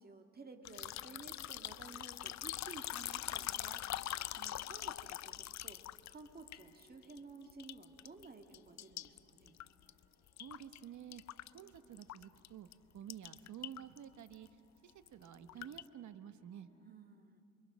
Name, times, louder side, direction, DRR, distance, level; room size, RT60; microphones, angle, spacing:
voice 1, 0.0-5.8 6.1-9.6 16.8-17.4, right 3 dB, 30° right, 5 dB, 2.0 m, -54 dB
sound 1, 0.6-7.2 7.5-8.3 8.5-10.8 11.1-12.5 12.7-12.8 13.1-14.0 14.3-14.5 14.9-15.9, left 13 dB, 65° left, 0.5 m, -43 dB
sound 2, 3.2-16.9, left 1 dB, 20° left, 7.0 m, -73 dB
voice 2, 10.4-11.2 11.5-12.7 12.9-14.5 14.8-16.7, right 10 dB, 75° right, 11 dB, 1.0 m, -51 dB
27.5 x 23.0 x 6.2 m, 2.6 s
cardioid pair, 100°, 29 cm